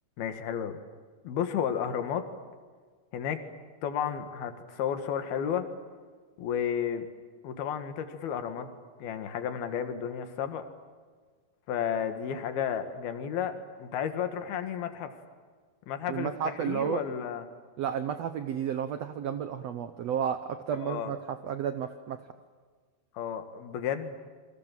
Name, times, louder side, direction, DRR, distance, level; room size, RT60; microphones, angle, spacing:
voice 1, 0.2-0.8 1.2-2.3 3.1-3.4 3.8-5.7 6.4-7.1 7.4-8.7 9.0-10.6 11.7-15.1 15.9-17.4 20.8-21.1 23.2-24.2, left 8 dB, 80° left, 8 dB, 3.7 m, -32 dB
voice 2, 16.1-17.1 17.8-22.2, right 8 dB, 75° right, 9 dB, 1.5 m, -32 dB
28.5 x 25.0 x 7.6 m, 1.5 s
omnidirectional pair, 4.3 m